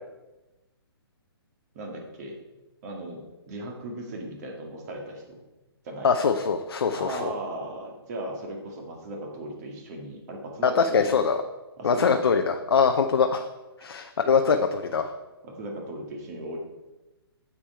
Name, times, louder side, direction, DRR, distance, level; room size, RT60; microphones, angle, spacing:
voice 1, 1.7-2.4 2.8-5.4 5.8-6.1 6.9-11.1 11.8-12.4 14.5-14.6 15.4-16.6, right 1 dB, 40° right, 1 dB, 2.1 m, -37 dB
voice 2, 6.0-7.3 10.6-11.4 11.8-13.5 13.8-15.1, left 5 dB, 70° left, 5 dB, 0.7 m, -23 dB
8.4 x 7.3 x 4.4 m, 1.1 s
hypercardioid pair, 135°, 13 cm